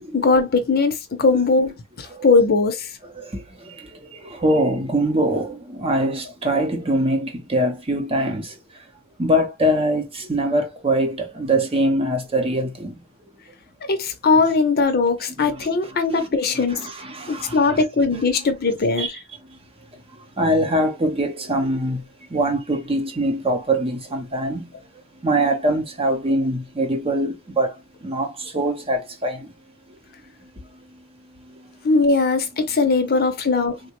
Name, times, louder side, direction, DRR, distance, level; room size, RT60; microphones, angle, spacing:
voice 1, 0.1-2.9 13.9-16.8 17.3-19.2 31.8-33.8, left 4 dB, 45° left, 0.6 m, -20 dB
voice 2, 3.1-8.5 9.2-13.0 15.4-15.7 16.1-16.3 16.5-17.8 19.0-19.1 20.4-22.0 22.3-24.7 25.2-29.5, right 1 dB, 25° right, 0.7 m, -23 dB
3.5 x 2.1 x 2.9 m
head